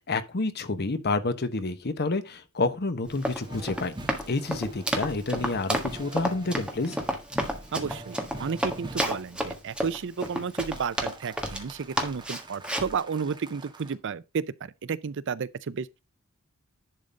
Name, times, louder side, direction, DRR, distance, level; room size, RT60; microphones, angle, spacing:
voice 1, 0.0-3.9 4.3-7.0, left 3 dB, 50° left, 1.0 m, -29 dB
Run, 3.1-11.7 12.0-12.9, equal, 5° right, 1.5 m, -30 dB
sound 1, 3.4-9.4 10.3-13.9, right 1 dB, 20° right, 1.3 m, -44 dB
voice 2, 7.7-15.9, right 6 dB, 60° right, 0.5 m, -32 dB
11.0 x 3.9 x 5.2 m
head